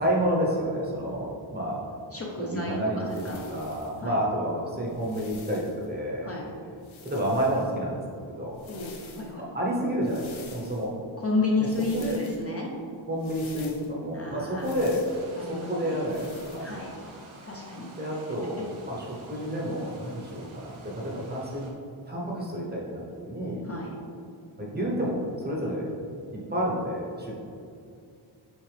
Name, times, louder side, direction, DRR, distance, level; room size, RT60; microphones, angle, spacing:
voice 1, 0.0-1.8 2.4-3.2 3.5-6.3 7.0-8.0 8.4-8.6 9.5-10.9 11.9-12.2 13.1-15.0 15.4-16.8 18.0-21.6 22.1-23.6 24.6-26.1 26.5-27.3, equal, 20° right, -3 dB, 0.9 m, -29 dB
voice 2, 2.1-3.4 4.0-4.2 6.2-6.5 8.7-9.4 11.2-12.7 14.1-14.7 15.4-15.9 16.6-16.9 17.4-17.9 23.6-23.9, left 3 dB, 30° left, -3 dB, 0.6 m, -31 dB
sound 1, 3.1-4.0 4.9-5.9 6.8-7.7 8.5-9.3 10.0-10.9 11.6-12.4 13.2-13.9 14.6-15.2 16.1-16.7, left 5 dB, 75° left, 0.9 m, -49 dB
sound 2, 15.0-21.7, right 1 dB, 80° right, 1.0 m, -49 dB
6.2 x 4.6 x 3.3 m, 2.5 s
wide cardioid pair, 175°, 48 cm